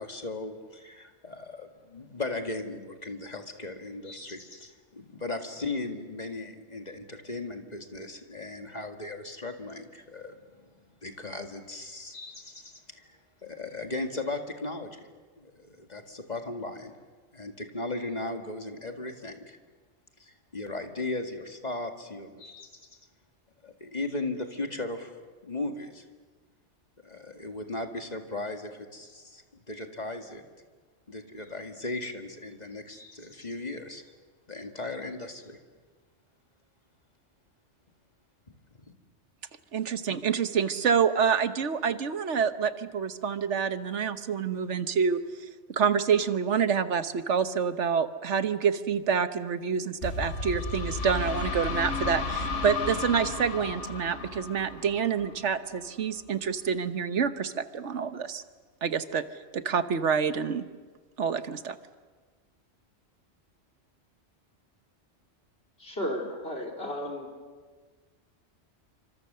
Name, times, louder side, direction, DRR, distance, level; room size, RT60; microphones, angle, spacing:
voice 1, 0.0-10.7 11.0-15.1 15.4-16.9 17.3-19.6 20.2-22.7 23.6-25.1 25.4-26.1 27.0-30.4 31.1-34.0 34.5-35.6 38.7-38.9, left 2 dB, 35° left, 4 dB, 2.1 m, -37 dB
voice 2, 39.7-45.2 45.7-58.4 58.8-59.2 59.5-60.6 61.2-61.8, right 6 dB, 75° right, 11 dB, 1.4 m, -27 dB
sound 1, 50.0-55.7, left 3 dB, 80° left, 3.2 m, -33 dB
voice 3, 65.8-67.3, left 1 dB, 60° left, 0 dB, 4.2 m, -34 dB
28.0 x 25.5 x 6.8 m, 1.4 s
omnidirectional pair, 1.2 m